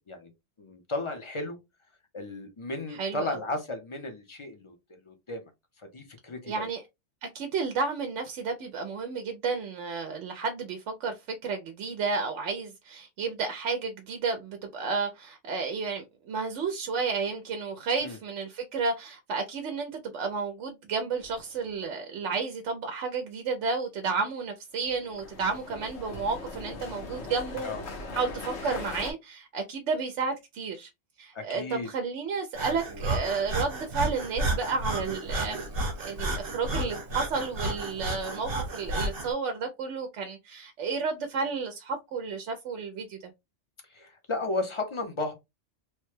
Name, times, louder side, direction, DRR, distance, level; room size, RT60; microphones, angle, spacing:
voice 1, 0.6-1.6 2.1-4.8 5.1-5.5 5.9-6.7 18.0-18.2 27.6-27.8 31.3-31.9 32.9-33.0 43.9-45.3, left 2 dB, 30° left, 0.6 m, -34 dB
voice 2, 2.9-3.3 6.5-6.8 7.3-27.7 28.1-30.9 31.2-35.7 36.0-43.3, right 4 dB, 90° right, 0.9 m, -32 dB
sound 1, 21.2-21.6 24.8-29.1, left 2 dB, 70° left, 1.3 m, -40 dB
Breathing, 32.5-39.3, right 2 dB, 55° right, 1.2 m, -32 dB
3.1 x 2.2 x 3.1 m
omnidirectional pair, 1.2 m